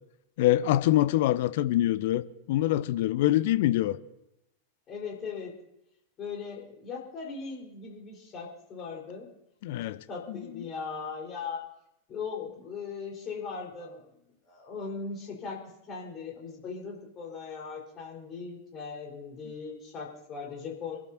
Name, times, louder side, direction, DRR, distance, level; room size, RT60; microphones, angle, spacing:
voice 1, 0.4-4.0 9.6-10.0 10.3-10.5, left 14 dB, 50° left, 0.6 m, -25 dB
voice 2, 4.9-5.5 6.2-9.3 9.9-11.6 12.1-14.1 14.5-15.6 15.9-21.0, left 5 dB, 30° left, 4.5 m, -39 dB
27.0 x 12.0 x 2.8 m
figure-of-eight pair, 90°, 0 cm